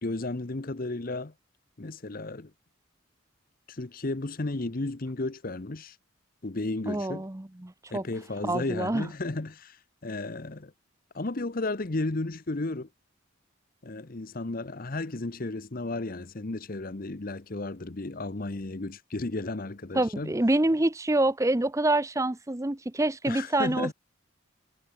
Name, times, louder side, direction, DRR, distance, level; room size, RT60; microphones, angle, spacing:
voice 1, 0.0-1.3 1.8-2.5 3.7-6.0 6.4-7.3 7.9-10.7 11.1-12.9 13.8-20.3 23.3-23.9, left 2 dB, 45° left, 0.9 m, -33 dB
voice 2, 6.9-8.0 8.4-9.1 19.9-23.9, right 2 dB, 15° right, 0.6 m, -26 dB
head